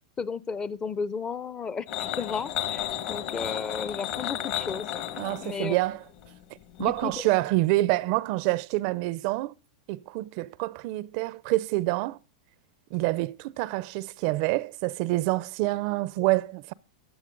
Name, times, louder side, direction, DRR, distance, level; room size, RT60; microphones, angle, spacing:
voice 1, 0.2-5.0 5.4-5.7 6.8-7.1, left 5 dB, 20° left, 0.5 m, -33 dB
sound 1, 1.9-7.2, left 12 dB, 55° left, 1.8 m, -34 dB
voice 2, 5.2-6.0 6.8-9.6 9.9-12.2 12.9-16.7, right 19 dB, 50° right, 0.4 m, -27 dB
14.0 x 9.7 x 3.8 m
hypercardioid pair, 130°, 4 cm